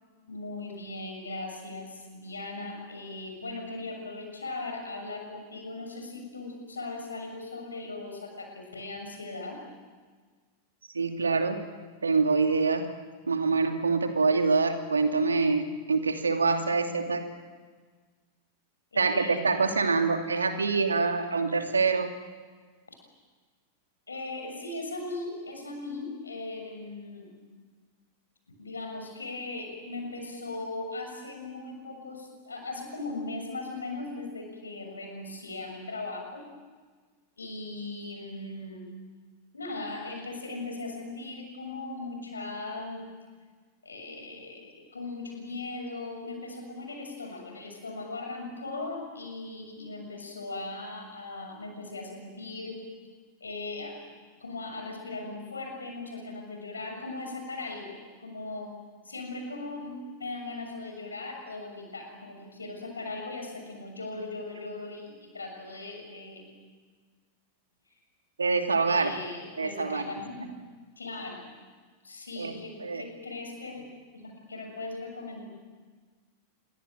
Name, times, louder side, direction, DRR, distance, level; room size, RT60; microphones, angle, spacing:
voice 1, 0.3-9.6 18.9-19.4 24.1-27.3 28.6-36.5 37.4-38.9 39.5-43.0 43.8-52.8 53.4-54.0 54.4-58.7 59.0-59.9 60.2-66.5 68.9-70.5 71.0-71.5 72.0-73.8 74.1-75.5, left 2 dB, 75° left, 4 dB, 6.9 m, -38 dB
voice 2, 10.9-11.6 12.0-12.8 13.3-17.2 19.0-22.1 68.4-69.1 69.6-70.1 72.4-72.5 72.8-73.0, right 4 dB, 75° right, 5 dB, 2.6 m, -25 dB
27.5 x 23.0 x 9.2 m, 1.5 s
figure-of-eight pair, 90°, 0 cm